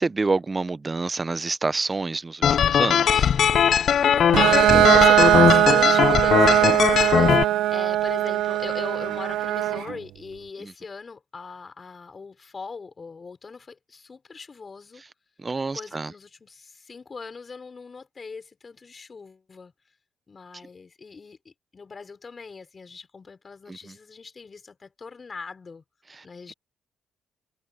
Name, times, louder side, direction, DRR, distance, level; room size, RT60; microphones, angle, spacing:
voice 1, 0.0-3.3 10.6-10.7 15.4-16.1, right 3 dB, 25° right, 0.7 m, -27 dB
sound 1, 2.4-7.4, left 8 dB, 60° left, 0.9 m, -19 dB
Bowed string instrument, 4.3-9.9, right 13 dB, 85° right, 1.0 m, -20 dB
voice 2, 4.5-15.0 15.7-19.7 20.3-25.8 26.2-26.5, left 4 dB, 35° left, 5.6 m, -39 dB
cardioid pair, 90°, 0 cm